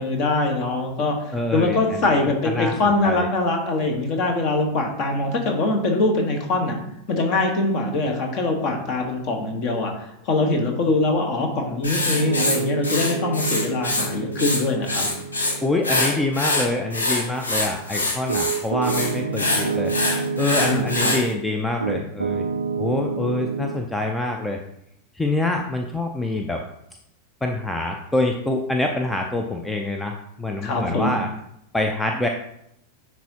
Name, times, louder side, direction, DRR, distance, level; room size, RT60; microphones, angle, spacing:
voice 1, 0.0-1.2 1.5-6.8 7.1-15.1 20.5-21.2 30.6-31.1, left 2 dB, 40° left, 3 dB, 1.2 m, -23 dB
voice 2, 1.3-2.1 2.4-3.3 15.6-19.9 20.4-22.5 22.8-24.6 25.1-26.6 27.4-31.3 31.7-32.3, left 2 dB, 10° left, 3 dB, 0.5 m, -25 dB
Writing, 11.8-14.1 14.3-15.5 15.8-21.2, left 2 dB, 75° left, 1.1 m, -24 dB
Piano, 12.0-21.4 21.8-23.8, right 5 dB, 75° right, 0.4 m, -29 dB
10.0 x 3.6 x 2.8 m, 0.77 s
figure-of-eight pair, 90°, 0 cm